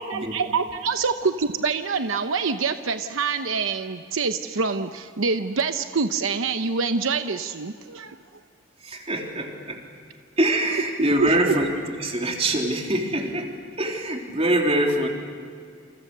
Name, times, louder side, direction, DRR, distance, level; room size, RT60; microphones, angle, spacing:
voice 1, 0.0-8.2 11.2-11.3, right 5 dB, 80° right, 8 dB, 0.9 m, -26 dB
voice 2, 8.8-9.8 10.4-11.7 12.0-15.1, right 1 dB, 30° right, 1 dB, 3.5 m, -24 dB
29.0 x 28.0 x 6.8 m, 2.1 s
head